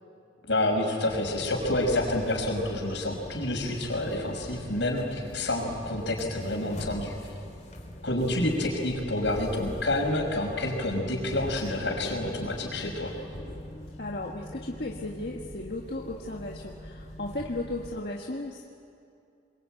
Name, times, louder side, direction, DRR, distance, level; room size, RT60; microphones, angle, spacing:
voice 1, 0.5-7.2 8.0-13.1, left 1 dB, 90° left, 1 dB, 5.6 m, -28 dB
sound 1, 1.1-18.0, equal, 40° left, 3.3 m, -42 dB
voice 2, 14.0-18.6, left 2 dB, 60° left, -1 dB, 1.6 m, -35 dB
27.0 x 22.5 x 9.1 m, 2.5 s
head